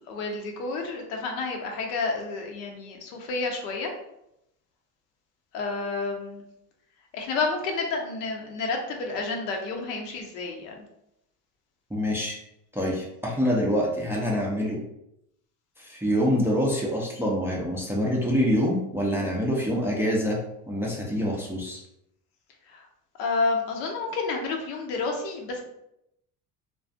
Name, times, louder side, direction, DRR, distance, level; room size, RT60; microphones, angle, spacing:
voice 1, 0.0-3.9 5.5-6.4 7.1-10.8 22.7-22.9 23.2-25.6, left 3 dB, 85° left, 2 dB, 0.7 m, -30 dB
voice 2, 11.9-12.4 12.7-14.8 15.8-20.4 20.7-21.8, equal, 5° right, -3 dB, 0.3 m, -25 dB
2.3 x 2.2 x 2.5 m, 0.82 s
hypercardioid pair, 75°, 46 cm